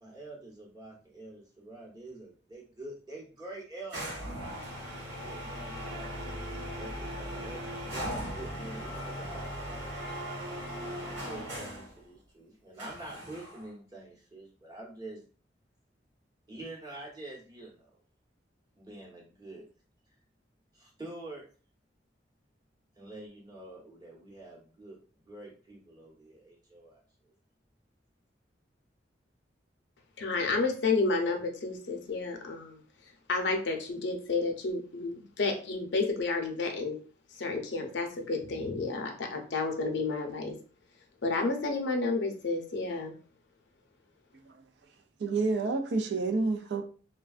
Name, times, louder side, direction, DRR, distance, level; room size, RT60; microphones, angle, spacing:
voice 1, 0.0-4.0 5.2-9.8 10.9-15.2 16.5-18.0 18.8-19.6 20.7-21.5 23.0-27.0, right 2 dB, 20° right, 0.9 m, -46 dB
sound 1, 3.9-11.9 12.8-13.7, equal, 85° right, 1.5 m, -38 dB
voice 2, 30.2-32.8 33.3-37.0 37.4-40.5 41.2-43.1, left 3 dB, 70° left, 0.6 m, -31 dB
voice 3, 45.2-46.8, right 3 dB, 65° right, 0.4 m, -29 dB
3.4 x 2.2 x 2.4 m
head